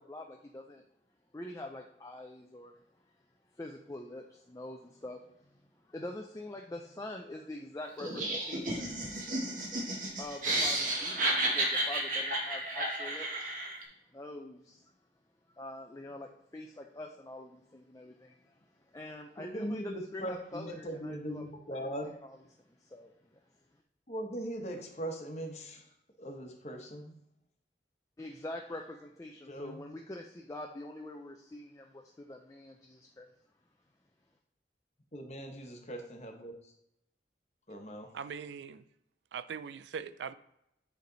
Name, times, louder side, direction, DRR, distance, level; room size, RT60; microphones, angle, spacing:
voice 1, 0.1-0.8 1.3-2.8 3.5-9.1 10.2-13.6 14.1-14.9 15.6-23.4 28.2-33.3, left 1 dB, 20° left, 0.4 m, -45 dB
Laughter, 8.0-13.8, right 1 dB, 45° right, 1.4 m, -32 dB
voice 2, 19.4-22.1 24.1-25.9 26.2-27.1 29.5-29.8 35.1-36.7 37.7-38.1, right 1 dB, 40° left, 1.0 m, -40 dB
voice 3, 38.1-38.8 39.3-40.3, right 6 dB, 85° right, 0.4 m, -41 dB
9.3 x 3.3 x 3.9 m
head